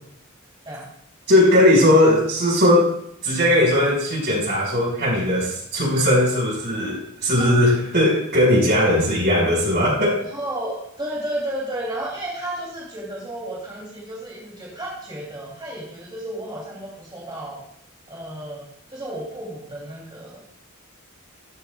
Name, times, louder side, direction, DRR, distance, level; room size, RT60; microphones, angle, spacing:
voice 1, 1.3-3.0 3.2-10.2, left 1 dB, 55° right, -3 dB, 5.1 m, -18 dB
voice 2, 10.3-17.6 18.1-20.4, right 1 dB, 20° right, -4 dB, 2.8 m, -32 dB
14.0 x 13.0 x 2.3 m, 0.74 s
head